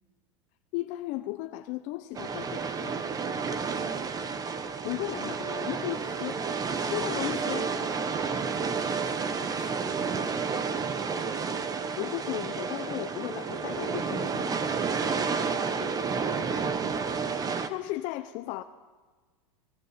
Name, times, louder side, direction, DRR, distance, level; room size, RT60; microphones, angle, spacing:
voice 1, 0.7-3.1 4.8-7.7 11.9-14.6 15.6-16.0 17.7-18.6, left 17 dB, 50° left, 0.8 m, -36 dB
sound 1, 2.1-17.7, right 5 dB, 20° right, 1.2 m, -31 dB
voice 2, 8.7-11.1, left 1 dB, 5° right, 6.7 m, -49 dB
26.5 x 20.0 x 5.1 m
hypercardioid pair, 115°, 16 cm